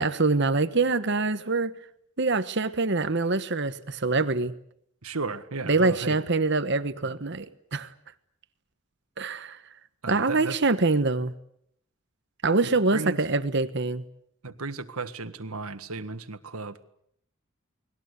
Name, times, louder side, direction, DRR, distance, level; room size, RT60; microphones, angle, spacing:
voice 1, 0.0-1.7 2.2-4.5 5.7-7.5 7.7-7.9 9.2-9.6 10.1-11.3 12.4-14.0, right 3 dB, 55° right, 11 dB, 1.2 m, -24 dB
voice 2, 5.0-6.2 10.0-10.6 12.9-13.2 14.4-16.8, right 3 dB, 90° right, 11 dB, 1.7 m, -34 dB
29.5 x 20.5 x 8.2 m, 0.72 s
head